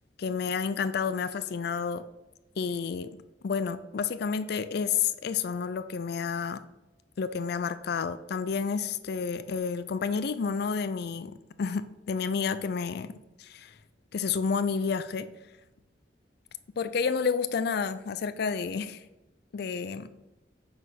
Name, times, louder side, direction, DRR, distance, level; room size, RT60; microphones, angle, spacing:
voice 1, 0.2-2.0 2.6-3.1 3.4-6.6 7.2-13.1 13.4-13.7 14.1-15.3 16.8-19.0 19.5-20.1, left 5 dB, 60° left, 12 dB, 0.4 m, -30 dB
9.3 x 4.0 x 5.8 m, 0.99 s
head